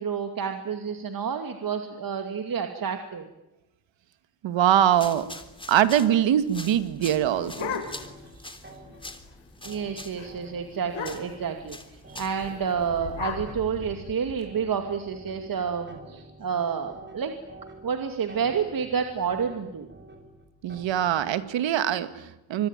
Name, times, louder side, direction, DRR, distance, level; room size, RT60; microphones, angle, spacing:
voice 1, 0.0-3.3 9.6-17.3 17.8-19.9, right 6 dB, 45° right, 6 dB, 2.6 m, -29 dB
voice 2, 4.4-5.3 5.7-7.7 20.6-22.7, right 10 dB, 70° right, 12 dB, 2.2 m, -23 dB
sound 1, 4.9-12.5, left 2 dB, 10° left, 3.4 m, -45 dB
sound 2, 7.0-8.3 8.6-8.7 9.0-9.3 9.7-9.9 10.2-10.3 10.8-11.5 12.4-14.4, left 8 dB, 80° left, 6.1 m, -37 dB
sound 3, 7.2-21.4, right 2 dB, 25° right, 7.2 m, -49 dB
26.5 x 23.5 x 9.1 m, 0.96 s
cardioid pair, 95°, 46 cm